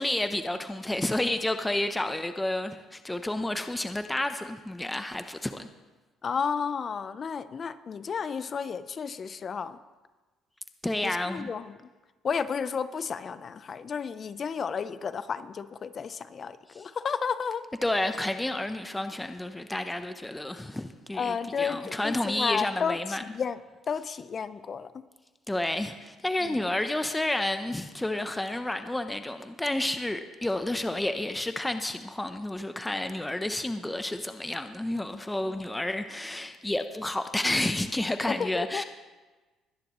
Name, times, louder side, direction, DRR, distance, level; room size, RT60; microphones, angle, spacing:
voice 1, 0.0-5.7 10.8-11.5 16.8-16.9 17.8-23.2 25.5-38.8, left 1 dB, 10° left, 8 dB, 0.7 m, -30 dB
voice 2, 6.2-9.8 11.0-11.7 12.2-17.6 21.1-23.6 23.9-25.0 26.4-26.6 38.3-38.8, left 6 dB, 45° left, 13 dB, 0.7 m, -32 dB
21.0 x 10.5 x 3.1 m, 1.2 s
cardioid pair, 90°, 0 cm